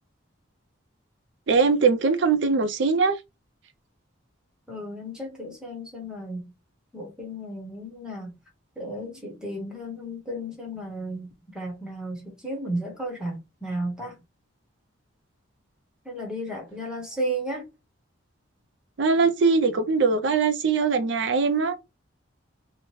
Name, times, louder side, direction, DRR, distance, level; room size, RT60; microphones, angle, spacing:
voice 1, 1.5-3.2 19.0-21.7, right 4 dB, 60° right, 0.4 m, -21 dB
voice 2, 4.7-6.5 6.9-8.3 8.8-14.2 16.0-17.7, right 1 dB, 5° right, 0.8 m, -34 dB
2.8 x 2.1 x 3.0 m
head